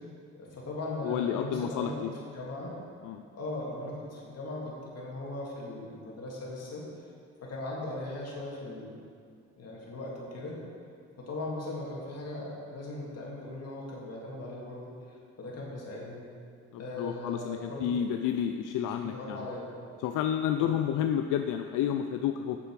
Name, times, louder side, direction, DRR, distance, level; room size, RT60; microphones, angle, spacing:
voice 1, 0.3-2.7 3.3-6.8 7.4-9.0 9.6-10.6 11.2-16.2 16.8-18.0 18.8-19.7 20.6-20.8, left 2 dB, 55° left, -4 dB, 2.5 m, -39 dB
voice 2, 1.0-2.1 3.0-3.2 16.7-19.4 20.0-22.6, left 9 dB, 85° left, 6 dB, 0.5 m, -30 dB
9.1 x 6.8 x 4.8 m, 2.3 s
cardioid pair, 90°, 30 cm